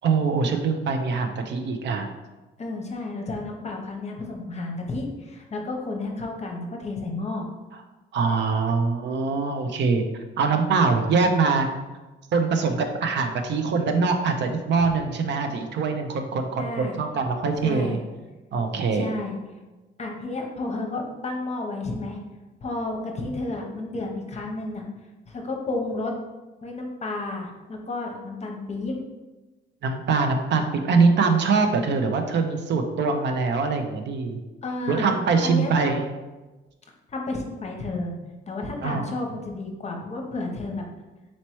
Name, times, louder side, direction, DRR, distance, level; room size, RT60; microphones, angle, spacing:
voice 1, 0.0-2.1 8.1-10.0 10.4-11.7 12.3-18.0 18.5-19.1 29.8-34.4 34.9-36.0 38.8-39.1, right 4 dB, 65° right, 5 dB, 0.5 m, -23 dB
voice 2, 2.6-7.5 11.1-11.3 16.6-17.0 17.6-18.0 18.9-19.4 20.0-22.2 22.6-24.9 25.3-26.1 26.6-29.0 34.6-35.1 35.4-36.0 37.1-38.1 38.5-40.8, left 2 dB, 35° left, 1 dB, 0.8 m, -31 dB
4.2 x 3.0 x 3.0 m, 1.1 s
cardioid pair, 90°, 20 cm